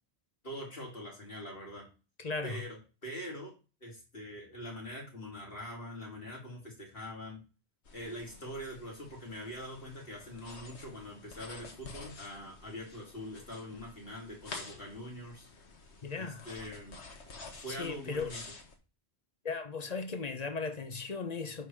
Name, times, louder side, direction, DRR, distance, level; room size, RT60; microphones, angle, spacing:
voice 1, 0.4-1.9 2.4-3.5 3.8-7.4 7.9-15.5 16.2-17.0 17.6-18.4, equal, 55° left, 3.4 m, -43 dB
voice 2, 2.2-2.6 16.0-16.5 17.0-17.2 17.7-18.3 19.4-21.7, left 4 dB, 40° left, 1.0 m, -37 dB
sound 1, 7.9-18.8, left 3 dB, 80° left, 1.6 m, -50 dB
11.0 x 4.0 x 4.7 m
omnidirectional pair, 1.1 m